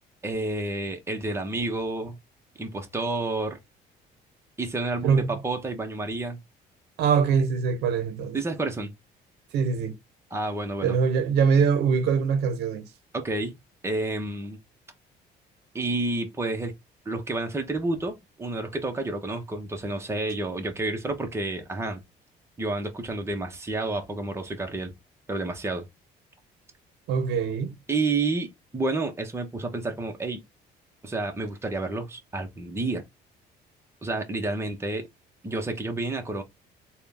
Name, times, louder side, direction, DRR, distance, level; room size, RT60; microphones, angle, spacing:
voice 1, 0.2-2.2 2.6-3.6 4.6-6.4 8.3-8.9 10.3-11.0 13.1-13.5 13.8-14.6 15.7-16.7 17.0-22.0 22.6-24.9 25.3-25.9 27.9-30.4 31.0-33.0 34.0-35.0 35.4-36.4, right 2 dB, 15° right, 1.0 m, -30 dB
voice 2, 5.0-5.4 7.0-8.4 9.5-9.9 10.8-12.8 27.1-27.7, right 6 dB, 80° right, 0.8 m, -23 dB
3.8 x 2.3 x 3.4 m
cardioid pair, 110°, 17 cm